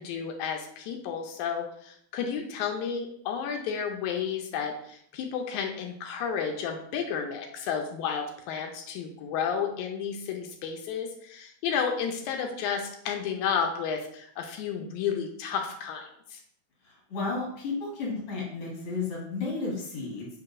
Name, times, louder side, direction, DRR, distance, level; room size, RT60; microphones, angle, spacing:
voice 1, 0.0-16.4, left 7 dB, 85° left, 3 dB, 2.0 m, -32 dB
voice 2, 16.8-20.3, left 3 dB, 50° left, -2 dB, 2.1 m, -33 dB
4.7 x 4.6 x 2.5 m, 0.68 s
omnidirectional pair, 3.3 m